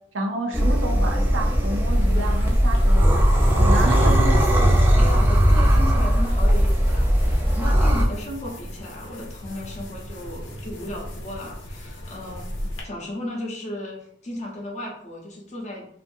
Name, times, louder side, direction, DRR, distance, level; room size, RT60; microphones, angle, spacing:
voice 1, 0.1-3.3 3.6-4.3, right 1 dB, 70° right, 3 dB, 0.5 m, -30 dB
sound 1, 0.5-8.0, equal, 10° right, 0.4 m, -18 dB
sound 2, 1.8-12.8, left 1 dB, 75° left, 0.6 m, -35 dB
voice 2, 4.8-15.9, left 1 dB, 35° left, -1 dB, 0.7 m, -35 dB
2.5 x 2.5 x 2.5 m, 0.70 s
head